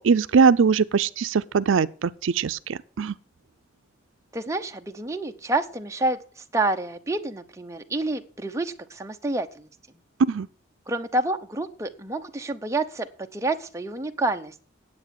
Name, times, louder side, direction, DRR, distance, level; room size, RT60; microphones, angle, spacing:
voice 1, 0.0-3.1 10.3-10.5, right 5 dB, 80° right, 0.4 m, -21 dB
voice 2, 4.3-9.7 10.9-14.5, right 2 dB, 15° right, 0.7 m, -28 dB
9.7 x 8.0 x 6.9 m
head